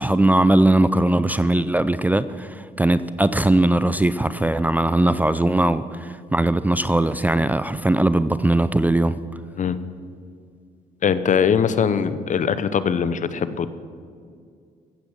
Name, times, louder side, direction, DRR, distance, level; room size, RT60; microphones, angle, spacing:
voice 1, 0.0-9.2, right 1 dB, 10° right, 14 dB, 0.4 m, -20 dB
voice 2, 11.0-13.7, left 7 dB, 50° left, 13 dB, 0.9 m, -21 dB
15.5 x 7.8 x 7.3 m, 2.2 s
cardioid pair, 80°, 16 cm